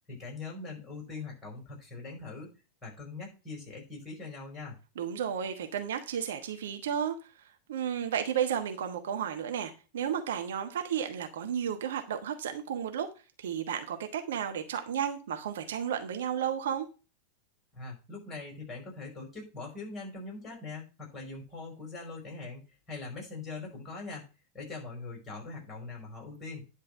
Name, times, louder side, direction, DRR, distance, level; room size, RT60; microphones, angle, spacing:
voice 1, 0.1-2.5 2.8-4.7 17.7-22.6 22.9-24.2 24.5-26.6, left 3 dB, 15° left, 5.0 m, -42 dB
voice 2, 5.0-13.1 13.4-16.9, right 8 dB, 60° right, 1.1 m, -33 dB
10.0 x 4.0 x 7.4 m
figure-of-eight pair, 90°, 0 cm